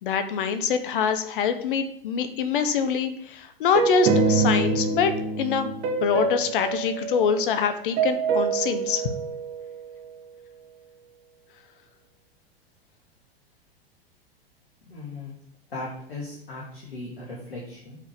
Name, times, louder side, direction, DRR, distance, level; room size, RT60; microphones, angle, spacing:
voice 1, 0.0-5.1 5.4-5.7 6.0-9.0, left 6 dB, 60° left, 9 dB, 1.1 m, -25 dB
sound 1, 3.7-7.6 8.0-10.0, right 4 dB, 40° right, 1.6 m, -26 dB
voice 2, 14.9-15.3 15.7-18.0, left 2 dB, 75° left, -4 dB, 2.3 m, -37 dB
8.4 x 4.9 x 5.2 m, 0.66 s
figure-of-eight pair, 95°, 30 cm